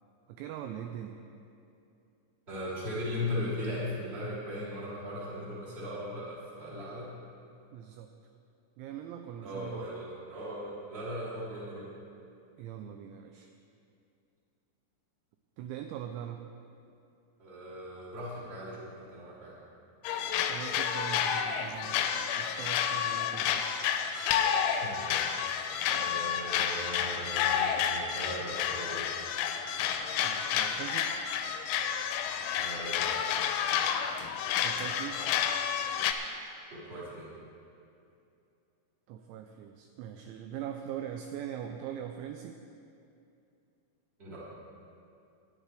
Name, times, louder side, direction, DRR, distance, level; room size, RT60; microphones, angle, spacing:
voice 1, 0.3-1.2 7.7-8.1 8.8-9.9 12.6-13.5 15.6-16.4 20.4-23.7 30.2-31.1 34.6-35.3 39.1-42.6, right 9 dB, 85° right, 5 dB, 2.6 m, -41 dB
voice 2, 2.5-7.1 9.4-11.9 17.4-19.6 24.7-29.1 32.5-33.2 36.7-37.2 44.2-44.4, left 1 dB, 15° right, -8 dB, 2.3 m, -38 dB
sound 1, 20.0-36.1, left 8 dB, 80° left, 2.8 m, -30 dB
19.0 x 11.5 x 3.4 m, 2.6 s
omnidirectional pair, 5.9 m